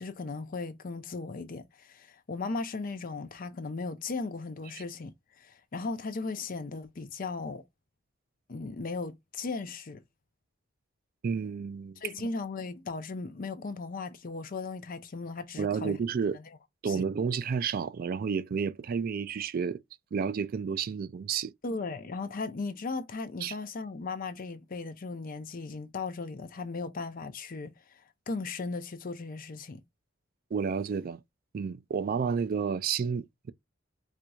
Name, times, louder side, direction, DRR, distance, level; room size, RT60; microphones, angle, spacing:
voice 1, 0.0-7.6 8.5-10.0 12.0-16.0 16.3-16.4 16.8-17.0 21.6-29.8, left 3 dB, 45° left, 0.5 m, -37 dB
voice 2, 11.2-12.0 15.6-16.4 16.8-19.8 20.1-21.5 23.4-23.5 30.5-31.2 31.5-33.5, right 6 dB, 45° right, 0.3 m, -31 dB
4.4 x 2.5 x 2.3 m
head